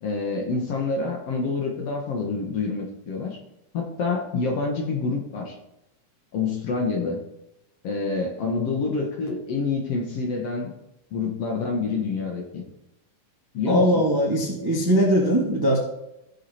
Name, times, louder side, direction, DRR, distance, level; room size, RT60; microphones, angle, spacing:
voice 1, 0.0-3.4 3.7-5.5 6.3-7.2 7.8-10.7 11.1-12.6 13.5-14.0, left 4 dB, 60° left, 1 dB, 2.1 m, -27 dB
voice 2, 13.7-15.8, equal, 10° right, -2 dB, 1.1 m, -20 dB
15.5 x 6.5 x 4.3 m, 0.89 s
omnidirectional pair, 3.8 m